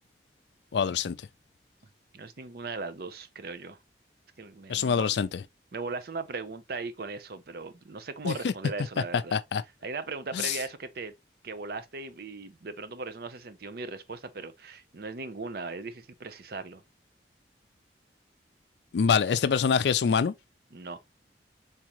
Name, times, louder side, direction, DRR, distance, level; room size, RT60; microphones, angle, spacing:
voice 1, 0.7-1.2 4.7-5.3 8.2-8.5 9.3-9.6 10.3-10.6 18.9-20.3, left 6 dB, 75° left, 0.4 m, -25 dB
voice 2, 2.1-3.8 4.4-5.1 5.7-9.4 9.8-11.1 11.4-16.8 20.7-21.0, right 3 dB, 60° right, 0.6 m, -38 dB
4.1 x 3.6 x 2.9 m
head